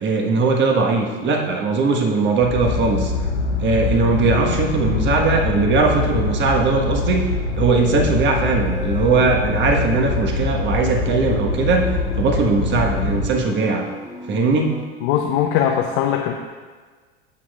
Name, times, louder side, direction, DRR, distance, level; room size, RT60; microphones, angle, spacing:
voice 1, 0.0-3.1 3.6-7.2 7.6-11.9 12.2-13.9 14.3-14.8, right 4 dB, 35° right, 2 dB, 1.5 m, -19 dB
sound 1, 2.4-13.3, left 3 dB, 90° left, 1.0 m, -24 dB
sound 2, 8.6-14.9, left 1 dB, 10° right, 1.9 m, -37 dB
voice 2, 15.0-16.3, left 9 dB, 55° left, 2 dB, 0.8 m, -20 dB
14.5 x 6.4 x 2.4 m, 1.4 s
hypercardioid pair, 90°, 33 cm